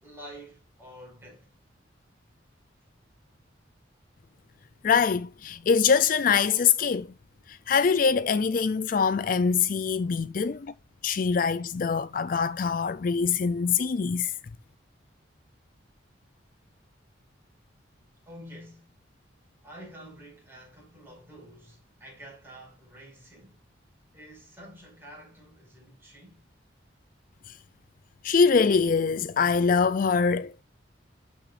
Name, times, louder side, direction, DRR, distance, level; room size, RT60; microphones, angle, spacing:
voice 1, 0.0-1.5 10.5-10.6 18.2-18.9 19.6-23.6 24.1-26.4, equal, 10° right, 5.4 m, -48 dB
voice 2, 4.8-7.1 7.5-10.7 11.0-14.3 27.5-27.6 28.2-30.6, left 5 dB, 45° left, 0.4 m, -24 dB
12.0 x 6.0 x 2.5 m
head